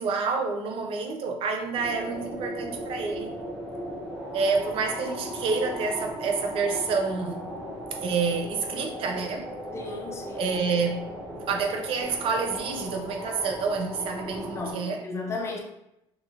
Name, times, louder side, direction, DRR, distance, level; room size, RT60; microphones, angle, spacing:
voice 1, 0.0-3.4 4.3-7.5 8.0-9.5 10.3-11.0 11.5-15.0, right 4 dB, 55° right, 0.5 m, -28 dB
sound 1, 1.7-14.7, equal, 5° right, 0.8 m, -37 dB
voice 2, 9.7-10.5 14.3-15.6, left 3 dB, 25° left, 0.6 m, -35 dB
2.8 x 2.4 x 2.6 m
cardioid pair, 125°, 11 cm